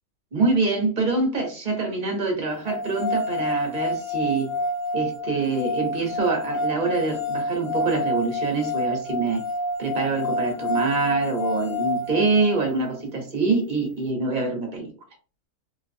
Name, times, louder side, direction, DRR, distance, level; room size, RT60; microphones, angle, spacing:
voice 1, 0.3-4.5 4.9-9.4 9.8-14.9, right 3 dB, 40° right, 2 dB, 0.9 m, -25 dB
sound 1, 2.7-12.8, left 1 dB, 65° left, 1.4 m, -28 dB
3.1 x 2.2 x 2.6 m, 0.36 s
omnidirectional pair, 1.6 m